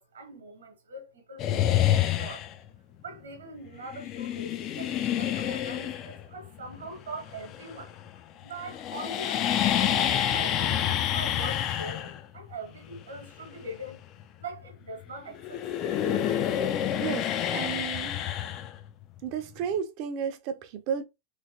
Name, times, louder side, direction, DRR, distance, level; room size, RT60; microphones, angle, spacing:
voice 1, 0.0-1.9 2.1-2.4 3.0-8.0 8.4-14.1 14.4-15.7, right 2 dB, 70° right, 1.0 m, -42 dB
sound 1, 1.4-2.7 3.9-8.2 8.4-15.0 15.3-19.2, left 11 dB, 35° left, 0.4 m, -28 dB
voice 2, 17.0-18.2 19.2-21.0, right 7 dB, 45° right, 0.5 m, -33 dB
3.0 x 3.0 x 2.7 m
figure-of-eight pair, 90°, 0 cm